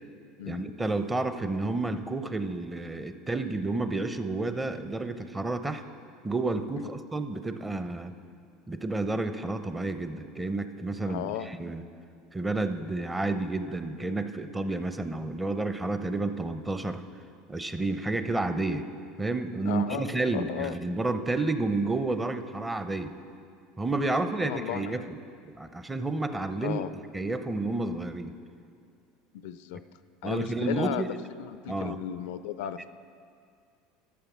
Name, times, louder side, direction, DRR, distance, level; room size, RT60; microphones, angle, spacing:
voice 1, 0.5-5.8 6.2-8.1 8.7-11.8 12.3-17.0 17.5-18.8 19.2-23.1 23.8-25.2 25.4-26.8 27.1-28.3 30.2-31.1 31.7-32.0, right 2 dB, 15° right, 9 dB, 0.7 m, -30 dB
voice 2, 11.1-11.5 19.7-20.8 24.4-25.1 26.6-26.9 29.3-29.8 30.2-31.1 31.4-32.9, left 11 dB, 70° left, 14 dB, 0.4 m, -35 dB
13.0 x 6.6 x 6.1 m, 2.3 s
hypercardioid pair, 85°, 0 cm